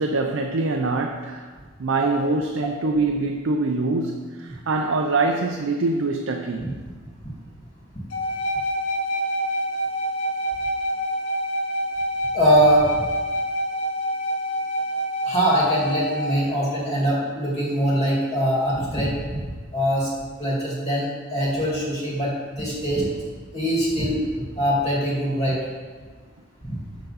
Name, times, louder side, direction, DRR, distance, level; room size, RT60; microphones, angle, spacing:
voice 1, 0.0-1.5 1.8-6.7, right 3 dB, 85° right, 2 dB, 0.5 m, -24 dB
sound 1, 8.1-16.4, equal, 80° left, 0.8 m, -26 dB
voice 2, 12.3-13.0 15.3-19.4 19.7-20.1 20.4-23.1 23.5-24.2 24.6-25.6 26.6-26.8, equal, 35° left, -6 dB, 2.1 m, -22 dB
6.6 x 6.6 x 4.1 m, 1.4 s
head